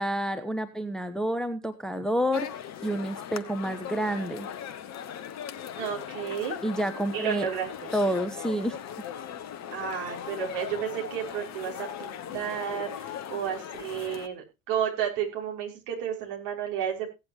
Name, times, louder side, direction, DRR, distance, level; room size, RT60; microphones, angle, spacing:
voice 1, 0.0-2.5 2.8-4.5 6.6-7.5 7.9-8.8, equal, ahead, 9 dB, 1.0 m, -29 dB
sound 1, 2.3-14.3, left 9 dB, 40° left, 1.2 m, -39 dB
voice 2, 5.8-6.6 7.1-7.9 9.7-17.1, right 9 dB, 55° right, 0 dB, 5.7 m, -32 dB
17.0 x 9.7 x 3.0 m, 0.27 s
figure-of-eight pair, 70°, 43 cm